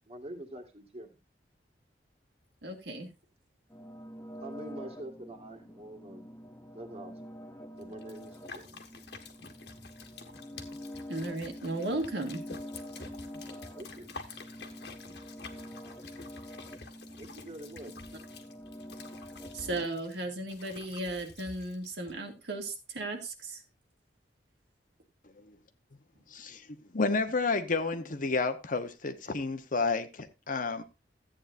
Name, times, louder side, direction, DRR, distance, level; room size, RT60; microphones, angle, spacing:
voice 1, 0.1-1.1 4.4-6.3 6.7-7.1 7.8-8.8 13.8-14.1 17.2-17.9, right 1 dB, 35° right, 1.9 m, -45 dB
voice 2, 2.6-3.1 11.1-12.4 19.5-23.6, right 2 dB, 75° right, 2.0 m, -35 dB
sound 1, 3.7-19.9, equal, 15° left, 0.7 m, -46 dB
sound 2, 7.8-22.1, left 4 dB, 70° left, 1.6 m, -49 dB
voice 3, 26.3-26.7 26.9-30.8, left 3 dB, 50° left, 1.0 m, -30 dB
14.0 x 8.8 x 2.6 m
head